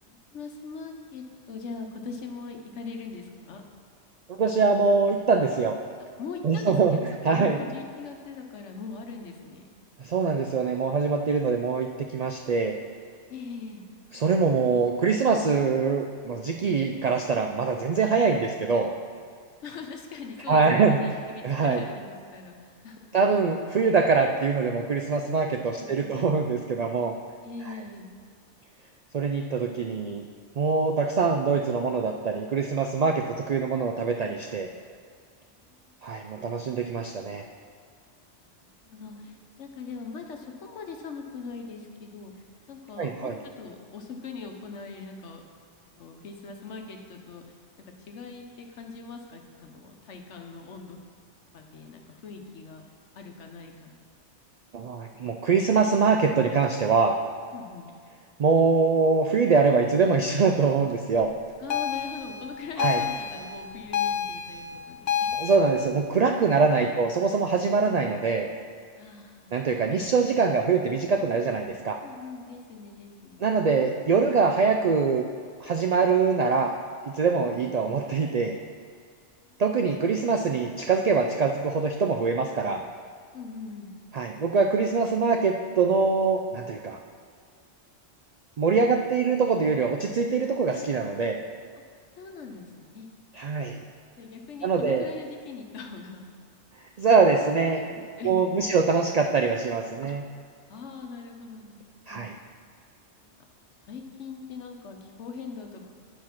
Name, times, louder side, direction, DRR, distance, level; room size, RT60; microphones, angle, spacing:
voice 1, 0.0-3.6 6.2-7.0 7.3-9.7 13.3-13.8 19.6-23.2 25.8-26.2 27.4-28.1 35.4-35.7 38.6-45.4 45.8-47.4 47.8-51.0 51.5-52.9 53.1-54.0 57.5-57.9 61.6-65.3 69.0-69.5 72.0-73.5 77.4-77.7 81.5-81.6 83.3-83.9 92.2-93.1 94.2-96.2 97.8-98.9 100.0-100.1 100.7-102.2 103.1-103.4 103.8-105.9, left 4 dB, 80° left, 3 dB, 1.2 m, -41 dB
voice 2, 4.3-5.8 6.4-7.0 7.2-7.6 10.0-12.8 14.1-18.9 20.5-21.0 21.4-21.8 23.1-27.2 29.1-30.2 30.6-34.7 36.0-37.4 43.0-43.4 54.7-57.2 58.4-61.3 62.8-63.0 65.4-68.5 69.5-72.0 73.4-75.2 75.6-76.7 77.1-78.6 79.6-82.8 84.1-87.0 88.6-91.4 93.4-93.8 94.6-95.1 97.0-97.8 98.2-100.2 102.1-102.3, right 4 dB, 75° right, 4 dB, 0.3 m, -23 dB
sound 1, 61.7-65.6, left 8 dB, 60° left, 0.4 m, -29 dB
9.5 x 4.6 x 5.8 m, 2.1 s
omnidirectional pair, 1.2 m